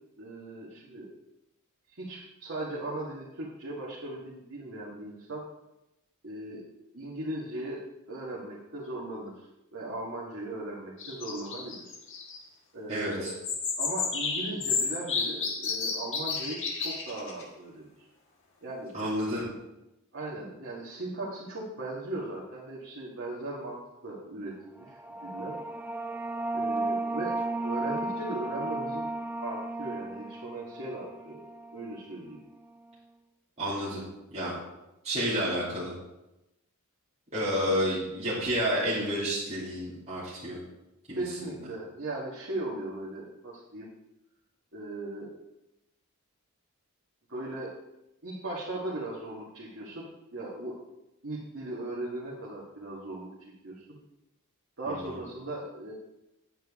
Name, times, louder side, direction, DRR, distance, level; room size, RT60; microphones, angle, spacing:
voice 1, 0.2-1.1 1.9-5.4 6.2-6.6 6.9-9.5 9.7-11.8 12.7-13.4 13.8-18.1 18.6-18.9 20.1-25.6 26.5-29.1 29.4-31.4 31.7-32.4 37.6-37.9 41.1-43.9 44.7-45.3 47.3-47.7 48.2-50.0 50.3-50.8 51.2-53.3 53.6-54.0 54.8-55.9, right 2 dB, 60° right, -6 dB, 1.8 m, -38 dB
sound 1, 11.0-12.4 13.2-17.4, left 5 dB, 60° left, 1.6 m, -32 dB
voice 2, 12.9-13.3 18.9-19.5 33.6-34.0 34.3-34.5 35.0-35.9 37.3-40.6 41.1-41.2 54.9-55.2, equal, 30° right, -10 dB, 2.9 m, -30 dB
sound 2, 24.9-32.1, right 2 dB, 10° right, 0.4 m, -34 dB
9.1 x 9.0 x 3.7 m, 0.93 s
head